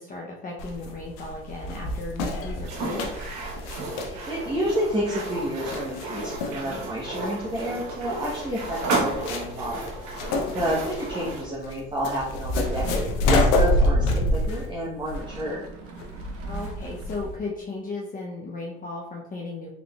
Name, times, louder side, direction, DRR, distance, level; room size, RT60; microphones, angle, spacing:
voice 1, 0.0-3.2 16.4-19.7, left 3 dB, 30° left, -3 dB, 0.7 m, -35 dB
sound 1, 0.6-17.4, left 1 dB, 75° left, 0.7 m, -28 dB
sound 2, 2.6-11.5, right 2 dB, 65° right, 1.1 m, -33 dB
voice 2, 3.9-10.3 10.5-15.6, equal, 15° right, -6 dB, 1.0 m, -30 dB
sound 3, 12.6-13.9 15.0-17.3, right 5 dB, 50° right, 0.7 m, -43 dB
3.6 x 3.6 x 2.3 m, 0.90 s
supercardioid pair, 80°, 29 cm